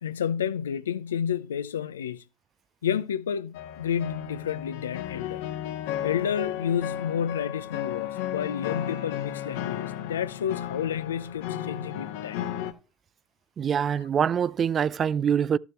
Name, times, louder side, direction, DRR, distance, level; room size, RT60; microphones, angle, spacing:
voice 1, 0.0-2.2 2.8-5.4 6.0-12.4, left 8 dB, 85° left, 0.6 m, -30 dB
sound 1, 3.5-12.7, left 11 dB, 70° left, 1.3 m, -34 dB
voice 2, 13.6-15.6, right 8 dB, 35° right, 0.4 m, -24 dB
12.5 x 7.0 x 3.1 m
hypercardioid pair, 80°, 0 cm